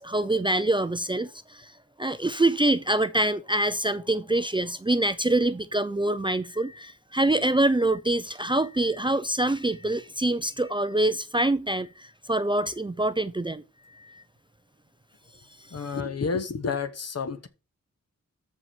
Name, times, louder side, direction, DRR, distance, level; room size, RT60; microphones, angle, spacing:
voice 1, 0.0-1.7 2.0-13.6 14.0-14.2, right 1 dB, 15° right, 0.4 m, -25 dB
voice 2, 15.7-17.5, left 5 dB, 55° left, 1.1 m, -30 dB
13.5 x 4.6 x 4.4 m
wide cardioid pair, 135°, 30 cm